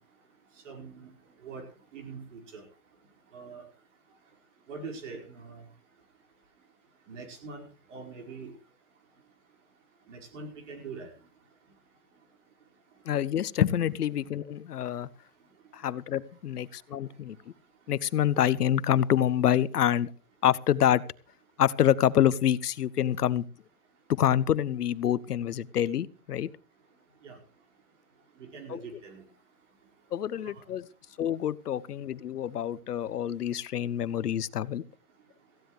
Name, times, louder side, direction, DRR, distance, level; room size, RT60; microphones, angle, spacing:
voice 1, 0.6-1.1 1.4-1.6 1.9-2.6 3.3-3.6 4.7-5.6 7.1-7.6 7.9-8.5 10.1-11.1 27.2-27.4 28.4-29.2 30.5-30.6, right 4 dB, 50° right, 3 dB, 4.9 m, -43 dB
voice 2, 13.0-15.1 15.7-17.5 17.9-20.1 20.4-21.0 21.6-23.5 24.2-26.5 28.7-28.8 30.1-30.9 31.2-34.8, left 10 dB, 90° left, 18 dB, 1.0 m, -27 dB
18.5 x 15.0 x 3.2 m, 0.36 s
hypercardioid pair, 170°, 45 cm